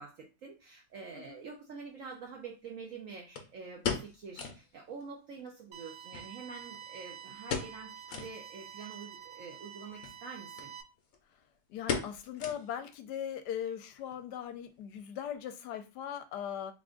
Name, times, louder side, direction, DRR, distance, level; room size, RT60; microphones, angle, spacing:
voice 1, 0.0-10.7, right 5 dB, 65° right, 0 dB, 0.9 m, -46 dB
sound 1, 1.3-1.4 3.4-4.7 5.0-5.1 5.4-5.5 6.1-7.0 7.4-8.4 8.9-9.0 9.9-10.2 10.6-10.7 11.0-11.3 11.9-12.9 13.2-13.3 13.9-14.3 14.5-14.6, left 6 dB, 60° left, 1.0 m, -37 dB
sound 2, 5.7-10.8, right 9 dB, 80° right, 0.6 m, -48 dB
voice 2, 11.7-16.7, left 9 dB, 80° left, 8 dB, 1.2 m, -39 dB
3.5 x 2.5 x 3.7 m, 0.29 s
omnidirectional pair, 1.8 m